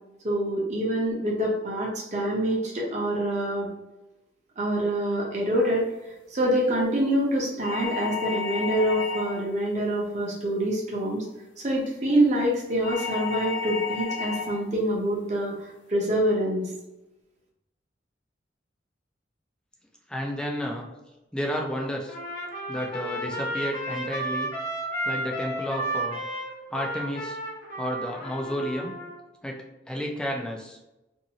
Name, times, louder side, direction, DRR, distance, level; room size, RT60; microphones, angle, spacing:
voice 1, 0.2-3.7 4.6-5.8 6.3-11.2 11.6-16.7, right 1 dB, 40° right, -2 dB, 0.8 m, -26 dB
sound 1, 7.6-9.6 12.8-14.6, left 6 dB, 85° left, 0.4 m, -32 dB
voice 2, 20.1-20.9 21.3-22.2 22.7-24.5 25.0-26.2 26.7-27.4 27.8-28.9 29.4-30.8, equal, 5° left, 0 dB, 0.4 m, -31 dB
Trumpet, 22.1-29.2, right 1 dB, 55° left, 0.9 m, -32 dB
2.7 x 2.5 x 2.9 m, 0.98 s
head